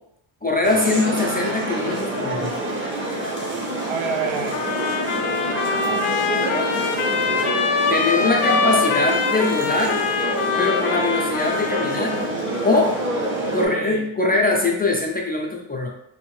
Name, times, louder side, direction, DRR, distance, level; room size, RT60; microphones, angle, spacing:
voice 1, 0.4-2.6 7.9-10.0 10.6-12.2 12.6-13.0 13.5-15.9, left 2 dB, 20° left, -1 dB, 0.3 m, -22 dB
sound 1, 0.6-13.7, right 1 dB, 25° right, 0.7 m, -27 dB
voice 2, 3.9-4.6 6.2-6.7 13.3-14.0, right 4 dB, 70° right, 4 dB, 0.7 m, -28 dB
sound 2, 4.5-12.3, left 5 dB, 80° left, 0.6 m, -24 dB
3.4 x 2.6 x 3.1 m, 0.76 s
wide cardioid pair, 125°, 50 cm